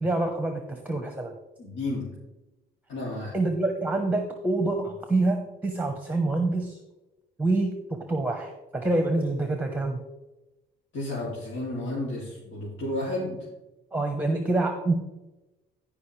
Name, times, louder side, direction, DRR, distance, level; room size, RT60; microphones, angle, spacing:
voice 1, 0.0-1.3 3.3-6.8 7.4-10.0 13.9-14.9, right 2 dB, 10° right, 5 dB, 1.1 m, -26 dB
voice 2, 1.6-2.1 2.9-3.4 10.9-13.4, left 1 dB, 75° left, -6 dB, 2.8 m, -32 dB
16.0 x 5.4 x 3.3 m, 1.0 s
cardioid pair, 90°, 20 cm